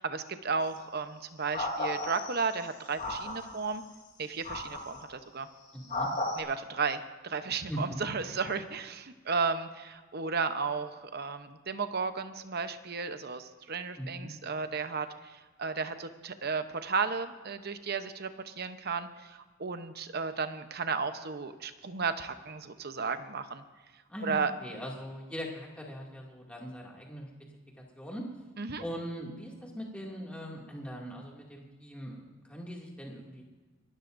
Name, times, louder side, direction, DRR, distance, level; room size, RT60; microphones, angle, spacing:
voice 1, 0.0-3.8 4.2-5.5 6.4-15.1 15.3-23.6 24.2-24.5 28.6-28.8, right 5 dB, 50° right, 9 dB, 0.9 m, -34 dB
sound 1, 0.6-0.8 1.5-2.5 3.0-3.6 4.4-5.0 5.9-6.4, left 1 dB, 40° left, 3.0 m, -34 dB
voice 2, 5.7-6.1 7.7-8.0 14.0-14.3 24.1-27.3 28.0-28.2 28.8-33.4, equal, 5° left, -2 dB, 2.4 m, -40 dB
27.5 x 13.0 x 2.6 m, 1.4 s
head